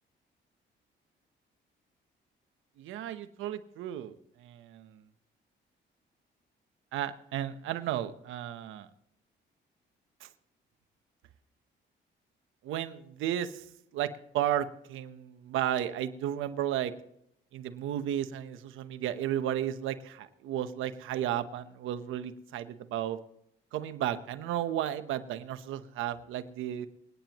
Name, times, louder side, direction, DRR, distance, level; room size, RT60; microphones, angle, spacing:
voice 1, 2.8-4.2 4.4-5.0 6.9-8.9 10.2-10.3 12.6-13.6 13.9-16.9 17.5-23.2 23.7-26.9, right 11 dB, 90° right, 10 dB, 1.0 m, -33 dB
27.0 x 9.4 x 3.0 m, 0.75 s
cardioid pair, 90°, 20 cm